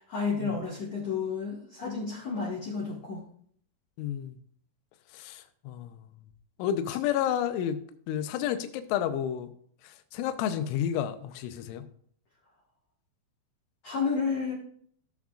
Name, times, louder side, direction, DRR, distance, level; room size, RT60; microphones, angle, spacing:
voice 1, 0.0-3.2 13.8-14.5, left 5 dB, 65° left, -5 dB, 1.7 m, -31 dB
voice 2, 4.0-4.4 5.1-6.0 6.6-7.8 8.1-9.5 9.8-11.8, left 10 dB, 85° left, 9 dB, 3.1 m, -31 dB
15.0 x 7.2 x 2.5 m, 0.63 s
omnidirectional pair, 5.5 m